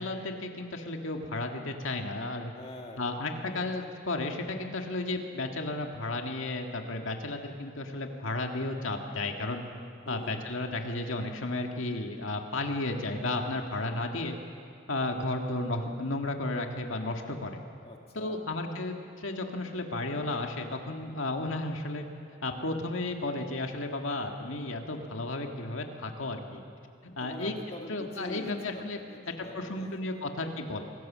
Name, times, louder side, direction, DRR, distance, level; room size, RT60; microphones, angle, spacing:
voice 1, 0.0-2.5 3.0-9.6 10.1-14.4 14.9-17.6 18.1-22.0 22.4-26.6 27.0-27.5 27.9-29.0 29.4-30.8, left 2 dB, 80° left, 3 dB, 1.9 m, -33 dB
voice 2, 2.5-3.9 10.0-10.5 17.8-18.4 27.2-30.0, left 1 dB, 30° left, 1 dB, 2.0 m, -45 dB
27.0 x 18.5 x 7.4 m, 2.3 s
head